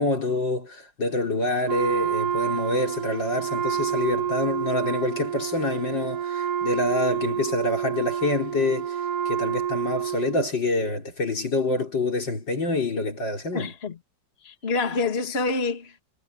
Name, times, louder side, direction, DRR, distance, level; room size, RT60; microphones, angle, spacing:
voice 1, 0.0-9.0 9.3-13.7, left 2 dB, 80° left, 5.3 m, -26 dB
Wind instrument woodwind instrument, 1.6-10.5, right 8 dB, 65° right, 1.6 m, -28 dB
voice 2, 13.5-14.0 14.4-16.0, left 3 dB, 35° left, 2.1 m, -27 dB
omnidirectional pair, 1.9 m